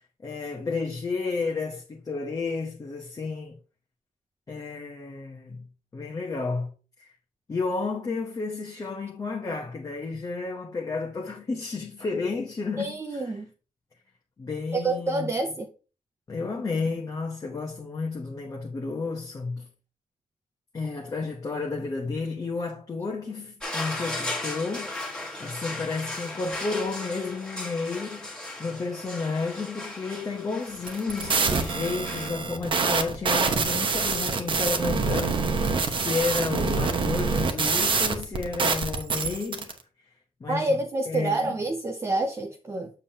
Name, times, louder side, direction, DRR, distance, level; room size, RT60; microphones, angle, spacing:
voice 1, 0.2-3.6 4.5-5.7 5.9-6.7 7.0-7.1 7.5-13.4 14.4-15.3 16.3-19.7 20.7-39.7 40.4-40.8 41.1-41.6, left 4 dB, 25° left, 0.9 m, -32 dB
voice 2, 12.8-13.5 14.7-15.7 36.1-36.2 40.5-42.9, right 2 dB, 20° right, 0.6 m, -28 dB
sound 1, 23.6-32.3, left 2 dB, 5° left, 1.8 m, -36 dB
sound 2, 30.8-39.7, right 4 dB, 40° right, 1.0 m, -26 dB
7.2 x 7.0 x 2.8 m
wide cardioid pair, 170°, 14 cm